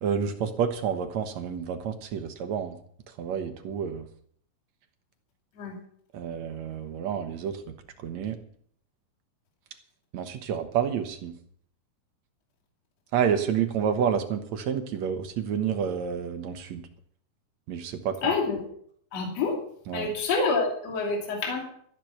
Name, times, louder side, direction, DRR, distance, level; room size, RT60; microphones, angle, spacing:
voice 1, 0.0-2.8 3.2-4.1 6.1-7.6 8.0-8.4 10.1-11.3 13.1-16.9 17.7-18.3 19.9-20.1, right 7 dB, 60° right, 7 dB, 2.2 m, -29 dB
voice 2, 18.2-18.6 19.1-19.6 19.9-21.6, left 4 dB, 50° left, -1 dB, 3.7 m, -27 dB
14.0 x 11.0 x 5.9 m, 0.63 s
omnidirectional pair, 4.1 m